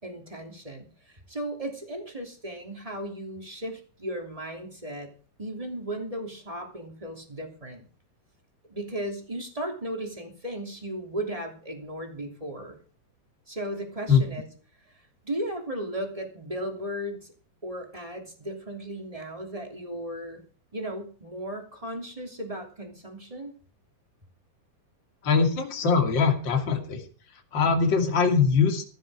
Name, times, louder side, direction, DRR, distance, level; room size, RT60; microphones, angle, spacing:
voice 1, 0.0-5.1 5.4-7.9 8.7-12.7 13.5-14.5 14.8-14.9 15.2-17.3 17.6-20.4 20.7-23.5, right 1 dB, 10° right, 3 dB, 2.4 m, -36 dB
voice 2, 25.2-27.0 27.3-28.8, left 5 dB, 35° left, 4 dB, 2.8 m, -22 dB
15.5 x 14.5 x 4.9 m, 0.40 s
omnidirectional pair, 4.3 m